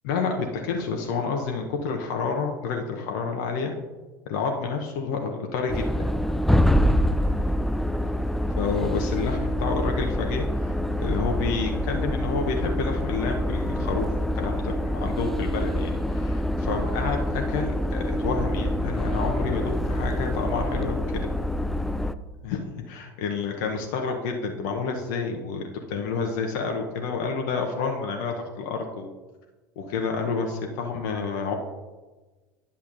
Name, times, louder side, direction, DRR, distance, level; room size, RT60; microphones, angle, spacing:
voice 1, 0.0-3.7 4.3-5.9 8.6-21.3 22.4-29.1 29.8-31.6, left 5 dB, 60° left, 2 dB, 0.8 m, -29 dB
sound 1, 5.7-22.1, equal, ahead, 0.3 m, -26 dB
10.5 x 7.0 x 2.6 m, 1.2 s
hypercardioid pair, 75°, 11 cm